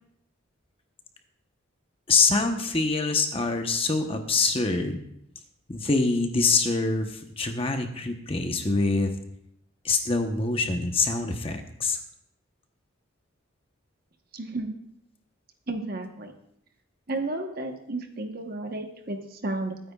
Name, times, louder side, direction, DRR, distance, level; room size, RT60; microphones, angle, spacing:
voice 1, 2.1-5.0 5.7-9.1 9.8-12.0, left 3 dB, 25° left, 5 dB, 1.0 m, -25 dB
voice 2, 14.3-14.7 15.7-16.3 17.1-19.8, right 2 dB, 45° right, 5 dB, 1.1 m, -32 dB
21.5 x 9.4 x 2.4 m, 0.75 s
head